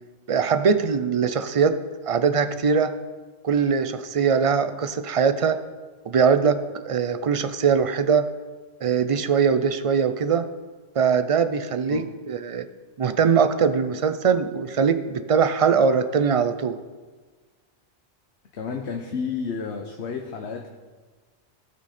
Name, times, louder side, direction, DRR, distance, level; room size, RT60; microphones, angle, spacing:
voice 1, 0.3-1.8 2.0-2.9 3.4-5.6 6.1-8.3 8.8-10.5 11.0-12.7 13.0-16.8, right 6 dB, 50° right, 11 dB, 0.4 m, -21 dB
voice 2, 18.5-20.7, left 5 dB, 65° left, 3 dB, 1.1 m, -31 dB
17.0 x 6.3 x 4.2 m, 1.4 s
omnidirectional pair, 1.2 m